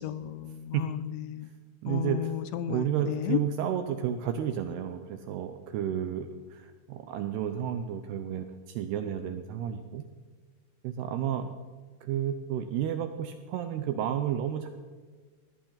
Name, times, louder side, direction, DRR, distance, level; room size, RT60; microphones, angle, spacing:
voice 1, 0.0-1.5 1.9-3.4, left 12 dB, 85° left, 13 dB, 2.8 m, -33 dB
voice 2, 1.8-2.3 2.7-10.0 10.8-11.5 12.0-14.7, right 9 dB, 80° right, 8 dB, 2.4 m, -31 dB
18.5 x 14.5 x 4.0 m, 1.5 s
omnidirectional pair, 5.4 m